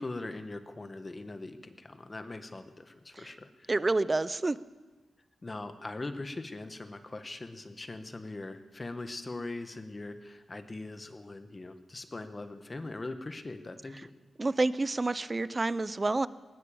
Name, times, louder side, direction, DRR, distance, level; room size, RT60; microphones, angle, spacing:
voice 1, 0.0-3.8 5.4-14.1, left 2 dB, 30° left, 9 dB, 1.4 m, -41 dB
voice 2, 3.7-4.6 14.4-16.3, right 2 dB, 30° right, 16 dB, 0.7 m, -28 dB
19.0 x 19.0 x 7.1 m, 1.2 s
wide cardioid pair, 90°, 0 cm